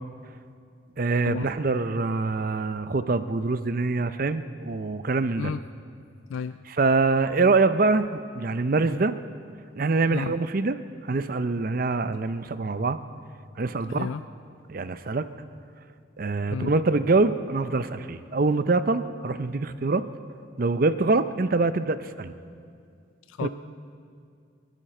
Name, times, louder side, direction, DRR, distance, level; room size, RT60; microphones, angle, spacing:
voice 1, 1.0-5.5 6.8-8.1 8.3-9.1 9.8-10.8 11.1-13.0 13.6-14.1 14.7-15.3 16.2-20.0 20.6-22.3 23.4-23.5, right 3 dB, 45° right, 12 dB, 0.5 m, -24 dB
voice 2, 13.9-14.3 16.5-16.7 23.3-23.5, left 6 dB, 90° left, 12 dB, 0.3 m, -32 dB
29.0 x 11.5 x 4.3 m, 2.3 s
head